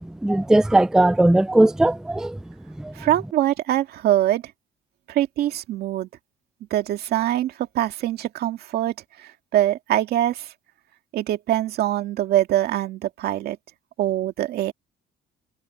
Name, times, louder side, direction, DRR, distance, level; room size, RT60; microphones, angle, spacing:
voice 1, 0.2-2.4 2.8-2.9, right 1 dB, 5° right, 0.4 m, -18 dB
voice 2, 2.9-4.4 5.1-6.1 6.7-10.5 11.1-13.6 14.0-14.7, right 13 dB, 70° right, 2.0 m, -23 dB
cardioid pair, 110°, 17 cm